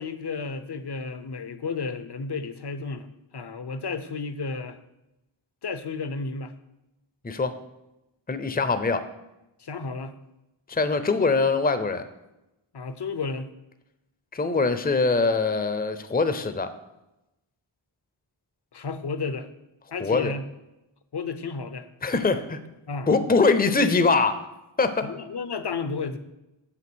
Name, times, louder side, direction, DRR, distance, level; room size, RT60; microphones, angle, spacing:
voice 1, 0.0-3.1 3.3-4.8 5.6-6.5 9.6-10.2 12.7-13.5 18.7-19.5 19.9-20.4 21.1-21.9 22.9-23.1 25.0-26.2, left 4 dB, 60° left, 11 dB, 0.8 m, -32 dB
voice 2, 8.3-9.1 10.7-12.0 14.3-16.7 20.0-20.3 22.0-22.6 23.1-24.5 24.8-25.1, left 4 dB, 20° left, 11 dB, 0.6 m, -23 dB
7.3 x 5.9 x 6.2 m, 0.94 s
wide cardioid pair, 55°, 47 cm